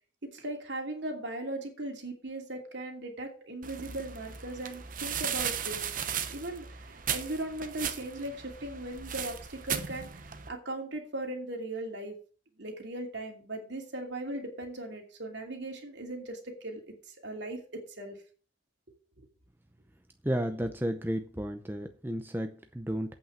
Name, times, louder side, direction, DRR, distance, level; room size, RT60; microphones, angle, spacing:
voice 1, 0.2-5.8 6.3-12.2 12.6-16.8 17.1-18.2, right 1 dB, 65° right, 2 dB, 2.6 m, -38 dB
sound 1, 3.6-10.5, right 8 dB, 45° right, 0.9 m, -36 dB
voice 2, 20.2-23.1, equal, 10° right, 6 dB, 0.6 m, -33 dB
8.4 x 5.7 x 7.2 m, 0.40 s
head